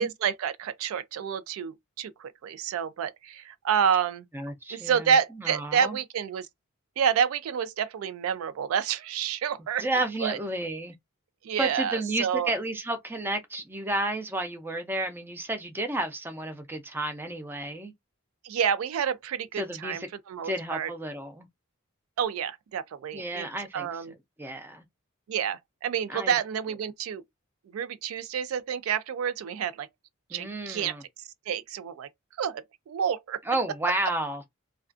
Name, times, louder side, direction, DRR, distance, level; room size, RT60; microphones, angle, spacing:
voice 1, 0.0-4.3 4.7-6.5 7.0-9.8 10.2-10.4 11.4-12.5 18.4-20.9 22.2-23.5 23.7-24.1 25.3-27.2 27.7-29.9 30.3-30.9 31.5-32.1 32.4-33.4, right 7 dB, 80° right, 0.3 m, -29 dB
voice 2, 4.3-5.1 5.4-6.0 9.8-10.9 11.6-17.9 19.6-20.1 20.4-21.5 23.1-24.8 26.1-26.4 30.3-31.0 33.4-34.4, right 1 dB, 10° right, 0.4 m, -32 dB
2.4 x 2.2 x 2.4 m
head